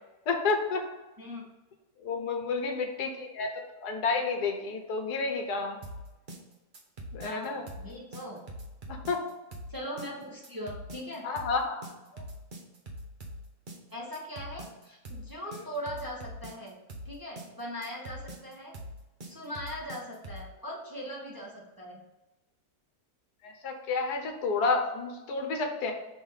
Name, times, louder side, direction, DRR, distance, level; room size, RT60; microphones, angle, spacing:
voice 1, 0.3-0.8 2.0-5.8 7.1-7.6 8.9-9.2 11.2-11.8 12.1-12.2 15.5-15.6 23.4-25.9, left 4 dB, 75° left, 3 dB, 1.5 m, -30 dB
sound 1, 5.8-20.5, equal, 35° right, 1.0 m, -43 dB
voice 2, 7.2-8.4 9.7-11.3 13.9-16.7 17.0-18.7 19.2-22.0, equal, 15° right, -4 dB, 1.1 m, -40 dB
6.3 x 3.5 x 5.5 m, 1.1 s
omnidirectional pair, 1.7 m